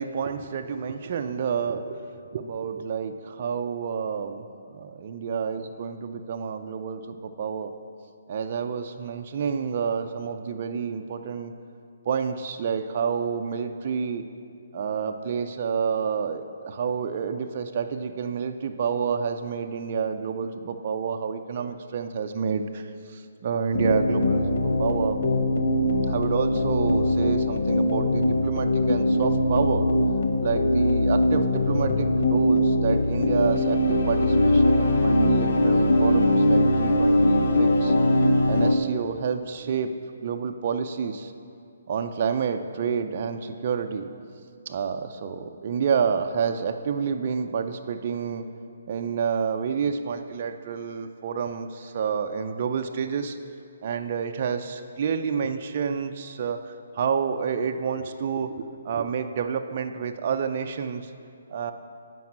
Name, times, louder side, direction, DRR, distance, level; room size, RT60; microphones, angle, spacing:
voice 1, 0.0-4.4 4.7-7.7 8.3-11.5 12.1-14.2 14.7-25.2 26.1-29.9 30.4-37.9 38.5-39.9 40.2-41.3 41.9-44.1 44.7-48.5 48.9-53.4 53.8-61.1 61.5-61.7, right 6 dB, 45° right, 6 dB, 0.5 m, -29 dB
sound 1, 23.7-38.7, left 1 dB, 65° left, 0.9 m, -21 dB
9.2 x 5.4 x 7.4 m, 2.4 s
hypercardioid pair, 150°, 0 cm